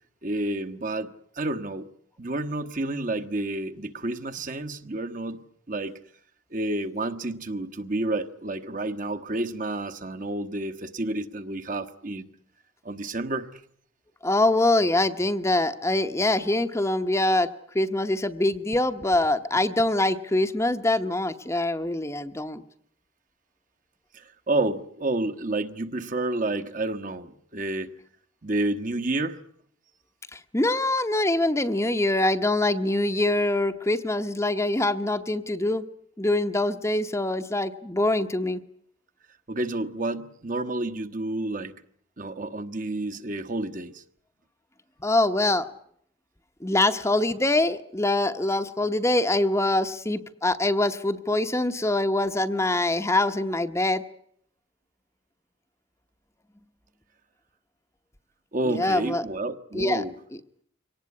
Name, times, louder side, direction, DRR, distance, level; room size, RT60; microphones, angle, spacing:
voice 1, 0.2-1.9 2.2-6.0 6.5-12.3 12.8-13.6 24.1-27.9 28.4-29.4 39.5-41.7 42.2-44.0 58.5-60.1, right 2 dB, 40° right, 1.2 m, -30 dB
voice 2, 14.2-17.5 17.7-22.6 30.3-35.8 36.2-38.6 45.0-45.7 46.6-54.0 58.6-59.3 59.7-60.0, left 2 dB, 15° left, 0.9 m, -24 dB
24.0 x 18.5 x 9.5 m
head